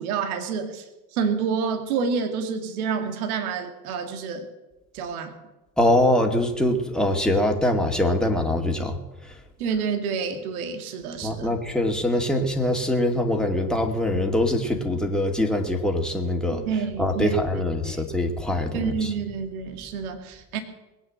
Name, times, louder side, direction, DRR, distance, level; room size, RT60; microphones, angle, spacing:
voice 1, 0.0-4.5 4.9-5.3 9.6-11.5 16.7-17.4 17.8-18.0 18.7-20.6, right 6 dB, 65° right, 7 dB, 2.2 m, -28 dB
voice 2, 5.8-9.0 9.2-9.4 11.2-16.6 17.0-19.1, left 1 dB, ahead, 2 dB, 2.4 m, -23 dB
20.5 x 8.9 x 7.8 m, 1.0 s
figure-of-eight pair, 80°, 47 cm